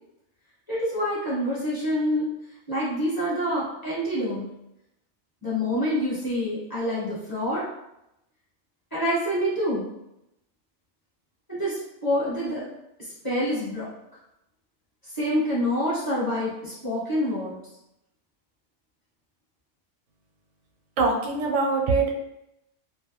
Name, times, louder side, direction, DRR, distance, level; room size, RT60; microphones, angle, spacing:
voice 1, 0.7-2.3 2.7-4.5 5.4-7.6 8.9-9.9 11.5-12.6 13.2-13.9 15.1-17.6, equal, 20° left, -9 dB, 0.9 m, -26 dB
voice 2, 21.0-22.1, right 4 dB, 80° right, 1 dB, 0.9 m, -23 dB
2.3 x 2.1 x 3.0 m, 0.85 s
omnidirectional pair, 1.2 m